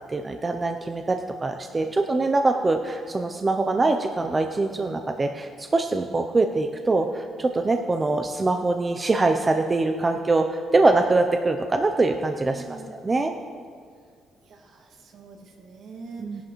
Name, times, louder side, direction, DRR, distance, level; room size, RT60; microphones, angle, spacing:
voice 1, 0.1-12.8 13.0-13.3 16.2-16.4, right 3 dB, 20° right, 5 dB, 0.4 m, -23 dB
voice 2, 12.4-12.9 14.4-16.4, right 4 dB, 60° right, 2 dB, 1.6 m, -44 dB
17.0 x 11.0 x 3.0 m, 2.1 s
cardioid pair, 160°, 0 cm